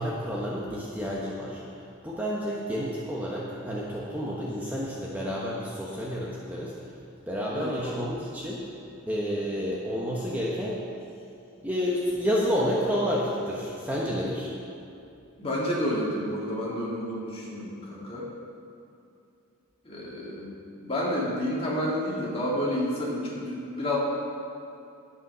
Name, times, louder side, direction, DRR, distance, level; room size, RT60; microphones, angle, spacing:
voice 1, 0.0-1.6 2.0-6.7 7.3-8.7 9.1-10.8 11.6-14.5, equal, 10° right, -5 dB, 1.0 m, -30 dB
voice 2, 7.5-8.1 14.0-14.3 15.4-18.3 19.8-24.0, left 1 dB, 25° left, -5 dB, 2.2 m, -30 dB
11.0 x 8.5 x 5.5 m, 2.6 s
head